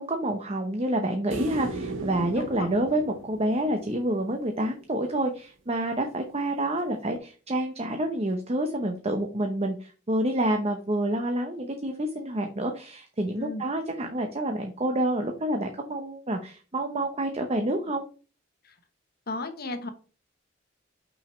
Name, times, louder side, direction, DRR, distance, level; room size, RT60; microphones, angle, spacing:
voice 1, 0.0-18.1, right 1 dB, 35° right, 4 dB, 0.8 m, -28 dB
sound 1, 1.3-4.6 7.2-7.3, right 2 dB, 80° right, 1.0 m, -37 dB
voice 2, 2.4-2.7 6.0-6.1 13.4-13.6 18.6-18.7 19.3-19.9, left 2 dB, 55° left, 7 dB, 1.1 m, -34 dB
6.1 x 5.1 x 4.4 m, 0.37 s
head